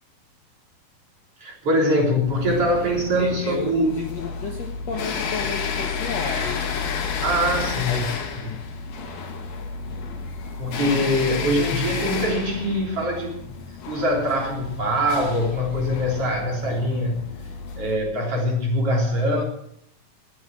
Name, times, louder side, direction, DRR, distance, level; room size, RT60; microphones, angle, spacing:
voice 1, 1.4-4.0 7.2-8.1 8.4-8.5 10.6-13.4 13.9-17.3 17.8-19.4, equal, 40° right, 0 dB, 4.2 m, -23 dB
sound 1, 2.3-18.0, left 5 dB, 75° left, 4.0 m, -31 dB
voice 2, 3.2-6.7 7.8-8.2, left 5 dB, 55° left, 2 dB, 2.0 m, -31 dB
20.5 x 8.3 x 7.6 m, 0.73 s
omnidirectional pair, 4.4 m